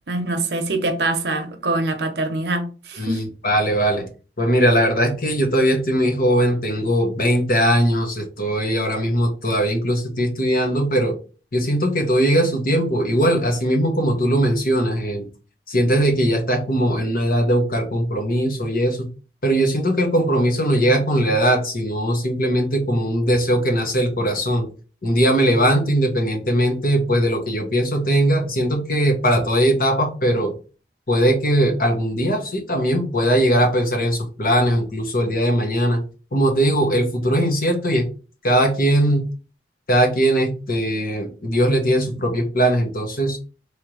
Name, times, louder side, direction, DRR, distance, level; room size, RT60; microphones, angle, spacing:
voice 1, 0.1-3.3, right 2 dB, 70° right, 0.9 m, -24 dB
voice 2, 3.0-4.1 4.4-11.1 11.5-15.3 15.7-19.1 19.4-24.7 25.0-30.5 31.1-36.0 36.3-38.1 38.4-39.2 39.9-43.4, equal, 50° left, 1.2 m, -20 dB
3.4 x 3.0 x 4.8 m
head